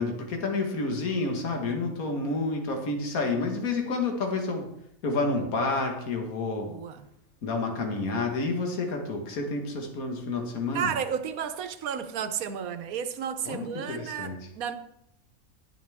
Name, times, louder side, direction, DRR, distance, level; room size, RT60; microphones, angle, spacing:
voice 1, 0.0-4.7 5.0-6.7 7.4-10.9 13.5-14.4, left 3 dB, 70° left, 1.9 m, -29 dB
voice 2, 6.7-7.1 10.7-14.7, right 7 dB, 75° right, 1.2 m, -32 dB
11.0 x 9.9 x 3.5 m
omnidirectional pair, 1.6 m